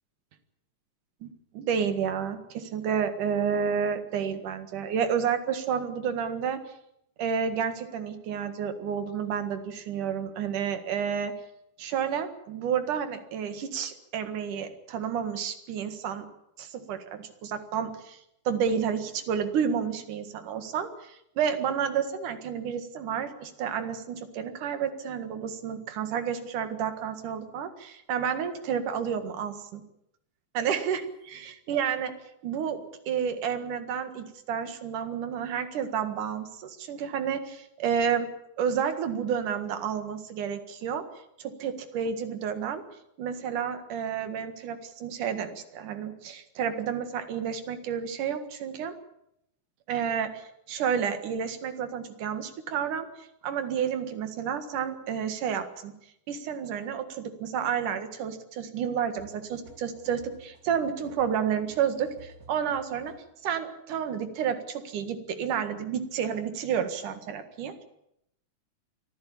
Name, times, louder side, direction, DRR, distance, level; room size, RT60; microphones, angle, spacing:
voice 1, 1.2-6.6 7.2-11.3 11.8-16.3 16.6-18.2 18.5-29.8 30.5-31.0 31.3-32.1 32.4-38.3 38.6-41.1 41.4-42.8 43.2-48.9 49.9-55.9 56.3-63.1 63.4-67.8, right 7 dB, 85° right, 9 dB, 3.3 m, -30 dB
sound 1, 59.2-63.4, right 3 dB, 30° right, 2.5 m, -53 dB
24.0 x 15.0 x 8.6 m, 0.78 s
omnidirectional pair, 3.5 m